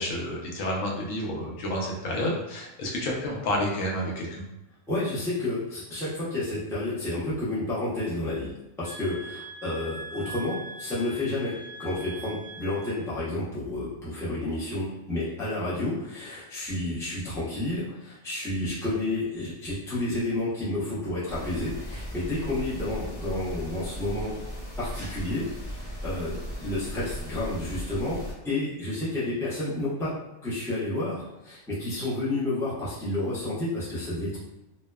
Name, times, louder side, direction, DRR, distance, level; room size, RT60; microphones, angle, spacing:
voice 1, 0.0-4.4, left 1 dB, 85° left, -2 dB, 1.0 m, -30 dB
voice 2, 4.9-8.5 8.8-24.4 24.8-30.1 30.4-34.4, left 2 dB, 5° left, -9 dB, 0.5 m, -30 dB
sound 1, 8.8-13.1, right 2 dB, 65° right, 0.9 m, -42 dB
sound 2, 21.3-28.3, equal, 40° left, 0.8 m, -37 dB
2.7 x 2.1 x 2.2 m, 0.95 s
omnidirectional pair, 1.3 m